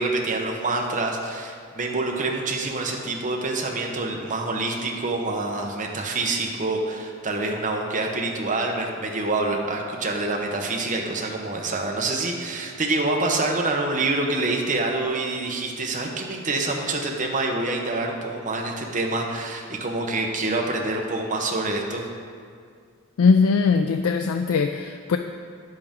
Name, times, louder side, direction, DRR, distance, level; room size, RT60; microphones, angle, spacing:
voice 1, 0.0-22.1, right 2 dB, 40° right, 1 dB, 1.0 m, -26 dB
voice 2, 23.2-25.2, left 5 dB, 85° left, 6 dB, 0.4 m, -20 dB
10.5 x 7.7 x 3.7 m, 2.2 s
head